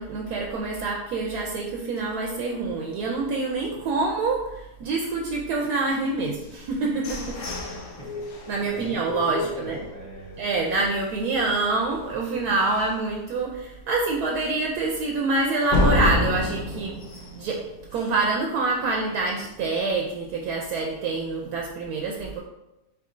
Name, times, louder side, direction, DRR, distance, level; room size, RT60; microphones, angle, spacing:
voice 1, 0.0-7.4 8.5-9.8 10.4-17.0 17.4-17.7 17.9-22.4, right 3 dB, 70° right, 0 dB, 1.0 m, -26 dB
sound 1, 6.4-10.3 10.8-10.9 11.2-11.6 12.0-12.1 12.6-12.7 15.7-18.4, left 2 dB, 60° left, 0.9 m, -28 dB
voice 2, 7.9-10.4, right 1 dB, 10° left, -7 dB, 1.1 m, -42 dB
4.8 x 4.0 x 2.5 m, 0.95 s
omnidirectional pair, 1.8 m